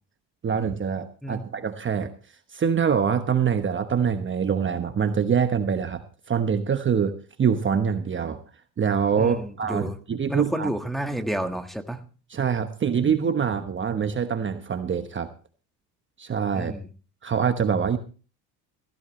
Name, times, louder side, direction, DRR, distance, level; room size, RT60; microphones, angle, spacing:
voice 1, 0.4-2.1 2.5-8.4 8.8-10.7 12.3-15.3 16.2-16.7 17.2-18.0, right 7 dB, 30° right, 8 dB, 1.1 m, -25 dB
voice 2, 9.2-10.0 10.3-12.0 16.5-16.9, right 1 dB, ahead, 5 dB, 1.5 m, -30 dB
15.5 x 15.0 x 3.1 m, 0.37 s
supercardioid pair, 95°, 40 cm